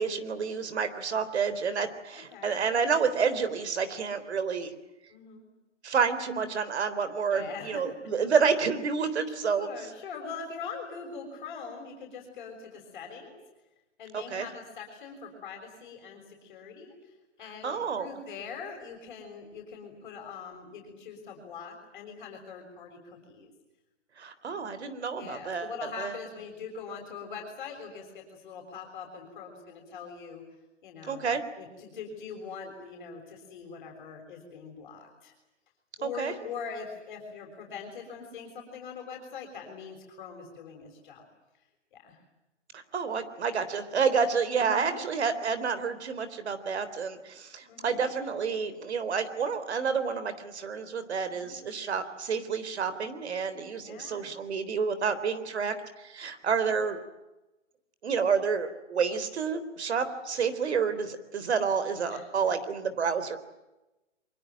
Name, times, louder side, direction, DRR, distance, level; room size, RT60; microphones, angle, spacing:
voice 1, 0.0-4.7 5.8-9.7 14.1-14.5 17.6-18.1 24.2-26.1 31.1-31.4 36.0-36.3 42.7-57.0 58.0-63.4, right 6 dB, 65° right, 12 dB, 3.8 m, -29 dB
voice 2, 5.1-5.5 7.3-7.8 9.3-13.4 14.0-16.9 17.4-23.5 24.5-24.8 25.2-30.4 30.8-35.3 36.0-41.3 41.9-42.2 44.6-45.0 47.7-48.0 51.4-51.5 53.8-54.3 56.4-56.8 62.1-62.3, left 5 dB, 40° left, 2 dB, 6.7 m, -42 dB
24.0 x 23.5 x 9.2 m, 1.0 s
hypercardioid pair, 160°, 36 cm